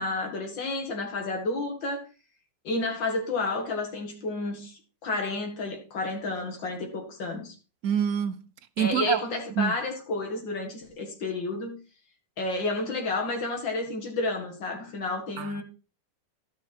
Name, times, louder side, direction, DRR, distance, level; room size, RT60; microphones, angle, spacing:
voice 1, 0.0-2.0 2.6-7.5 8.8-11.8 12.4-15.6, left 2 dB, 80° left, 2.6 m, -31 dB
voice 2, 7.8-8.4 8.8-9.2 9.6-9.7 15.4-15.6, right 8 dB, 60° right, 1.1 m, -26 dB
14.0 x 5.8 x 4.4 m
omnidirectional pair, 2.0 m